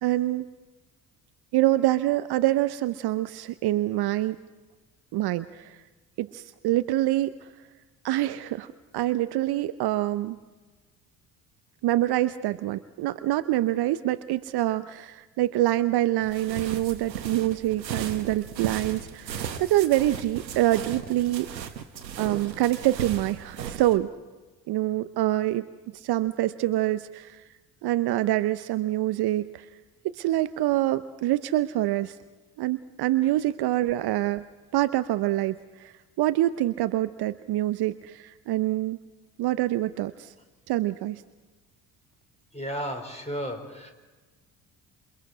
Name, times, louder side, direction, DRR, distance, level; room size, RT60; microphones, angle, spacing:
voice 1, 0.0-0.4 1.5-4.4 5.1-5.8 6.2-7.3 8.0-8.7 8.9-10.4 11.8-21.6 22.2-24.1 24.7-25.7 25.9-27.4 27.8-29.7 30.1-32.2 32.6-34.4 34.7-39.0 39.4-40.3 40.7-41.2, right 15 dB, 50° right, 13 dB, 0.8 m, -26 dB
sound 1, 16.2-23.9, right 8 dB, 85° right, 1.2 m, -36 dB
voice 2, 42.5-43.9, equal, 15° left, 5 dB, 4.8 m, -33 dB
28.0 x 25.5 x 4.9 m, 1.2 s
figure-of-eight pair, 50°, 49 cm